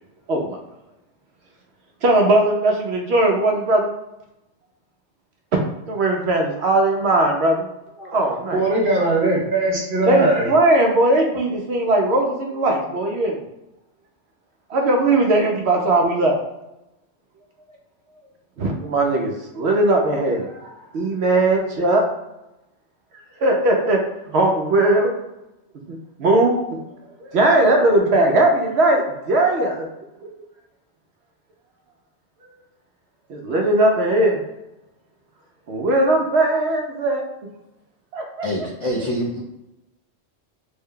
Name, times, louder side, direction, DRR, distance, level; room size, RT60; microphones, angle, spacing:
voice 1, 2.0-3.9 5.9-7.7 8.1-8.6 10.1-13.4 14.7-16.4 18.6-22.0 23.4-24.0 24.3-25.1 25.9-26.5 27.3-29.9 33.3-34.4 35.7-37.2 38.1-38.5, right 2 dB, 70° right, 1 dB, 0.8 m, -19 dB
voice 2, 8.5-10.5, right 2 dB, 50° right, -4 dB, 1.2 m, -20 dB
voice 3, 38.4-39.4, equal, 45° left, -4 dB, 0.4 m, -25 dB
3.3 x 2.2 x 3.6 m, 0.92 s
omnidirectional pair, 1.2 m